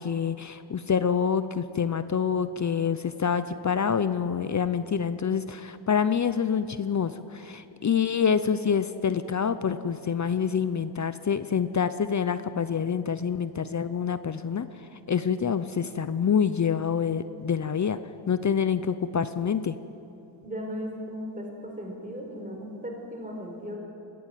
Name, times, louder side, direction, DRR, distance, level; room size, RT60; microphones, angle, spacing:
voice 1, 0.0-14.7 15.1-18.0 18.3-19.7, left 7 dB, 40° left, 12 dB, 0.7 m, -26 dB
voice 2, 20.4-23.8, equal, 20° right, 0 dB, 4.8 m, -36 dB
21.5 x 15.5 x 9.2 m, 3.0 s
wide cardioid pair, 115°, 45 cm